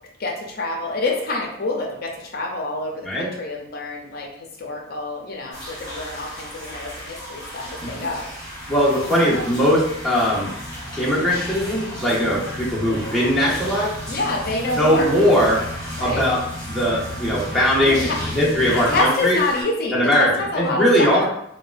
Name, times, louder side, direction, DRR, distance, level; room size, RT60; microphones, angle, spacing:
voice 1, 0.2-8.7 9.0-9.4 14.1-15.1 15.9-16.3 17.9-18.2 18.7-21.2, left 2 dB, 45° left, 0 dB, 0.5 m, -27 dB
sound 1, 5.5-19.6, equal, 15° left, 1.2 m, -36 dB
sound 2, 7.8-19.0, left 1 dB, 50° right, 0.9 m, -35 dB
voice 2, 8.7-10.5 11.0-13.9 14.8-15.6 16.0-16.4 16.7-19.4 19.9-21.3, equal, ahead, -8 dB, 0.6 m, -20 dB
3.5 x 2.2 x 2.4 m, 0.76 s
head